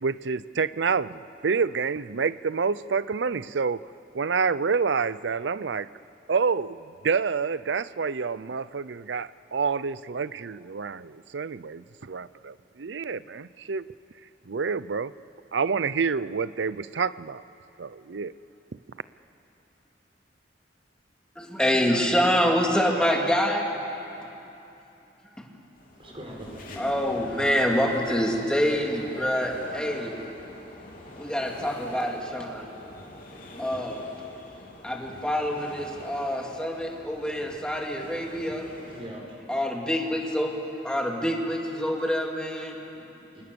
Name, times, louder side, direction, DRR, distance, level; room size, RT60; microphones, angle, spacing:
voice 1, 0.0-3.8 4.1-5.9 6.3-13.9 14.5-15.1 15.5-17.4 17.8-18.3, right 5 dB, 80° right, 17 dB, 0.6 m, -28 dB
voice 2, 21.4-23.7 25.4-25.5 26.8-30.1 31.2-32.7 33.6-34.0 34.8-38.7 39.5-40.5 40.8-42.7, equal, 5° left, 0 dB, 2.8 m, -26 dB
sound 1, 25.8-39.1, left 1 dB, 50° left, 3.6 m, -44 dB
voice 3, 26.0-27.0 38.8-39.4 42.8-43.4, equal, 30° right, -1 dB, 5.5 m, -43 dB
30.0 x 25.5 x 7.0 m, 2.9 s
head